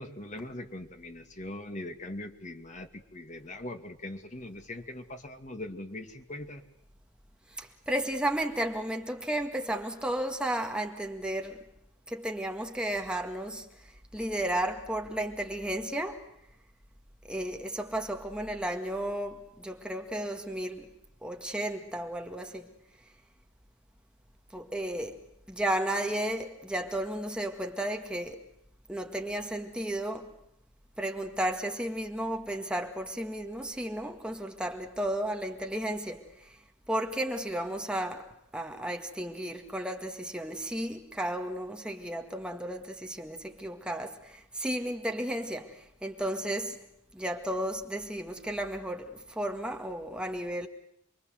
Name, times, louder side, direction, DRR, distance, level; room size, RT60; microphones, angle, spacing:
voice 1, 0.0-6.6, left 1 dB, 40° left, 2.3 m, -41 dB
voice 2, 7.6-11.6 12.1-13.7 14.1-16.3 17.3-20.9 21.2-22.7 24.5-28.4 28.9-30.4 31.0-36.6 36.9-46.8 47.1-50.7, right 1 dB, 5° right, 2.0 m, -33 dB
28.0 x 23.0 x 8.0 m
head